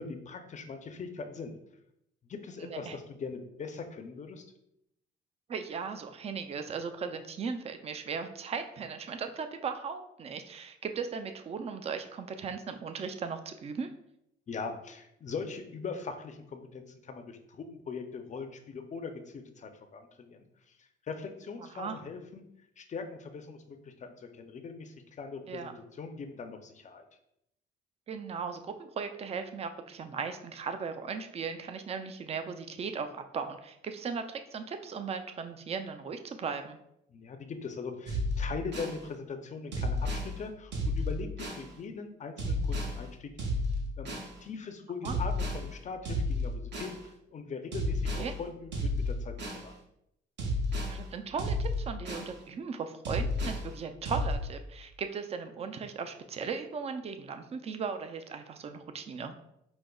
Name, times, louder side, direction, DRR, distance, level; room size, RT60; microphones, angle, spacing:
voice 1, 0.0-1.5 2.2-4.4 14.5-22.4 22.8-27.0 37.1-43.3 44.0-49.7, left 5 dB, 40° left, 7 dB, 0.4 m, -41 dB
voice 2, 2.6-2.9 5.5-13.9 21.6-22.0 25.5-25.7 28.1-36.8 45.0-45.2 48.2-48.4 50.9-59.3, right 5 dB, 30° right, 8 dB, 0.3 m, -37 dB
sound 1, 38.1-39.0 39.7-40.3 40.7-41.6 42.4-43.0 43.4-44.3 45.0-45.6 46.0-47.0 47.7-48.3 48.7-49.6 50.4-50.9 51.4-52.3 53.0-53.6 54.0-54.3, left 1 dB, 60° right, 0.8 m, -31 dB
4.9 x 2.0 x 2.3 m, 0.79 s
cardioid pair, 90°, 20 cm